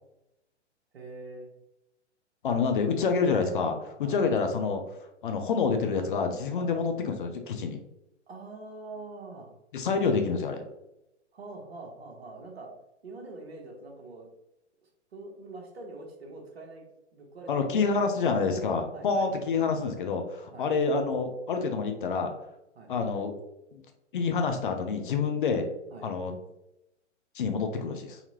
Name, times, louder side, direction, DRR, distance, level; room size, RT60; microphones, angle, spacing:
voice 1, 0.9-1.5 4.0-4.2 6.5-6.7 8.3-9.5 11.3-12.7 13.0-14.3 15.1-16.8 17.1-17.6 17.9-18.0 18.9-19.3 20.5-20.7 22.7-22.9 25.9-26.1, right 3 dB, 60° right, 1 dB, 1.1 m, -44 dB
voice 2, 2.4-7.8 9.7-10.6 17.5-22.3 22.9-23.3 23.7-23.8 24.1-25.7 26.0-26.3 27.3-28.2, left 5 dB, 45° left, 5 dB, 0.6 m, -27 dB
4.0 x 2.8 x 2.8 m, 0.87 s
figure-of-eight pair, 120°, 36 cm